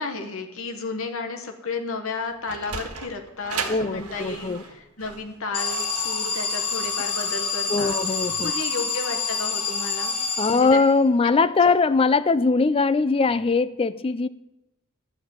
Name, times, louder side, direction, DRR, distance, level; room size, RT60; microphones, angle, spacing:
voice 1, 0.0-8.0 8.4-10.2 10.5-10.8, left 3 dB, 60° left, 1.2 m, -33 dB
Sliding door, 2.2-7.3, right 5 dB, 80° right, 1.6 m, -36 dB
voice 2, 3.7-4.6 7.7-8.5 10.4-14.3, left 4 dB, 25° left, 0.3 m, -21 dB
Alarm, 5.5-11.1, left 4 dB, 80° left, 2.1 m, -27 dB
12.5 x 6.1 x 8.6 m
head